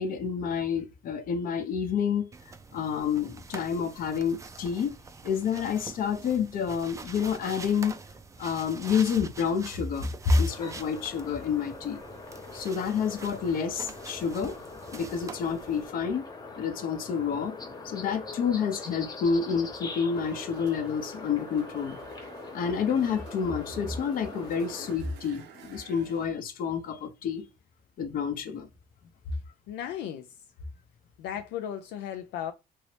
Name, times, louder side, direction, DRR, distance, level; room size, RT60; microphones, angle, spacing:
voice 1, 0.0-2.3 2.7-4.9 5.2-8.0 8.4-12.0 12.5-14.6 14.9-16.3 16.6-17.6 17.8-22.0 22.5-27.4 28.0-28.7, left 6 dB, 60° left, 0.7 m, -29 dB
sound 1, 2.3-15.9, right 4 dB, 20° right, 0.4 m, -45 dB
sound 2, 10.5-24.9, left 3 dB, 25° left, 0.7 m, -42 dB
sound 3, 20.1-26.3, right 7 dB, 75° right, 0.7 m, -50 dB
voice 2, 29.7-30.3 31.2-32.5, left 10 dB, 85° left, 0.4 m, -35 dB
3.0 x 2.7 x 3.1 m
cardioid pair, 110°, 17 cm